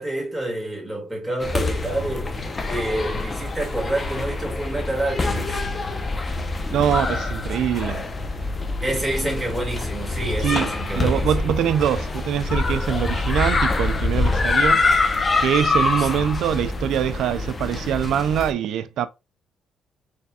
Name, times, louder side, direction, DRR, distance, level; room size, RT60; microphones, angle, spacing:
voice 1, 0.0-2.3 2.7-5.6 8.8-11.5 16.0-16.3, right 1 dB, 5° right, 2.1 m, -28 dB
sound 1, 1.4-18.5, left 3 dB, 30° left, 0.7 m, -25 dB
voice 2, 6.7-8.0 10.4-10.7 11.0-14.8 15.4-19.1, right 9 dB, 80° right, 0.4 m, -23 dB
4.1 x 3.3 x 2.3 m
cardioid pair, 90°, 0 cm